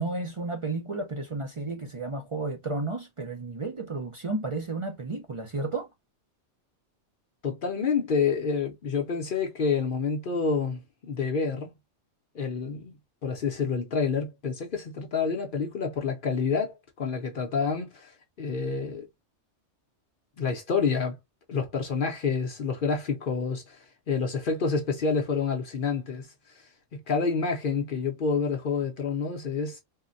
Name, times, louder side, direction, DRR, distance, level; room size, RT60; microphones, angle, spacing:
voice 1, 0.0-5.9, right 3 dB, 45° right, 0.4 m, -32 dB
voice 2, 7.4-11.7 12.3-13.0 13.2-19.1 20.4-21.1 21.5-29.8, left 5 dB, 55° left, 0.7 m, -28 dB
3.6 x 2.1 x 2.5 m
omnidirectional pair, 1.3 m